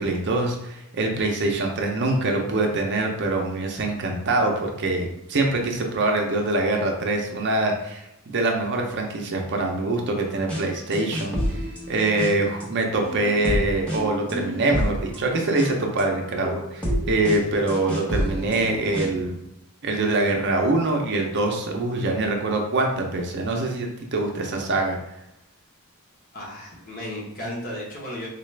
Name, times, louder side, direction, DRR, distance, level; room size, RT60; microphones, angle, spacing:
voice 1, 0.0-11.6 11.9-19.4 19.8-25.0, right 2 dB, 50° right, 2 dB, 0.5 m, -24 dB
sound 1, 10.5-10.6 10.9-12.6 13.0-19.3, equal, 5° left, 0.7 m, -29 dB
voice 2, 26.3-28.3, left 1 dB, 40° left, -4 dB, 1.0 m, -34 dB
3.9 x 2.4 x 3.2 m, 0.85 s
head